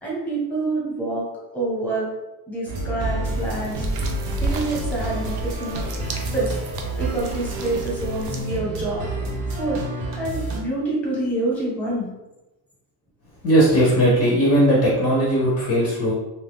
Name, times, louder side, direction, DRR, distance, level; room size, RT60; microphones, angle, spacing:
voice 1, 0.0-1.2 1.5-2.1 2.5-3.9 4.4-5.9 6.3-6.5 7.0-9.1 9.5-9.8 10.2-12.1, right 2 dB, 5° left, -5 dB, 0.8 m, -27 dB
sound 1, 2.7-10.6, right 2 dB, 90° right, 0.8 m, -29 dB
sound 2, 3.2-8.4, right 3 dB, 60° right, 0.6 m, -33 dB
voice 2, 13.4-16.1, right 1 dB, 35° left, -5 dB, 0.6 m, -18 dB
2.6 x 2.3 x 3.4 m, 1.0 s
cardioid pair, 170°, 42 cm